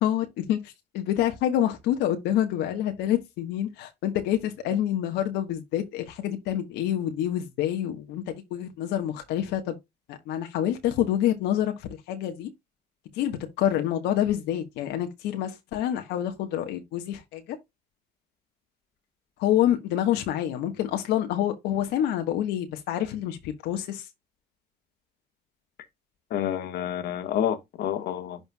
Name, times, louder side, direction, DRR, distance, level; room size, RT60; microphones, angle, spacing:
voice 1, 0.0-9.8 10.1-11.7 12.1-12.5 13.1-17.4 19.4-24.1, left 11 dB, 85° left, 1.4 m, -27 dB
voice 2, 26.3-28.4, left 10 dB, 70° left, 1.5 m, -29 dB
11.5 x 4.5 x 2.3 m
cardioid pair, 110°, 17 cm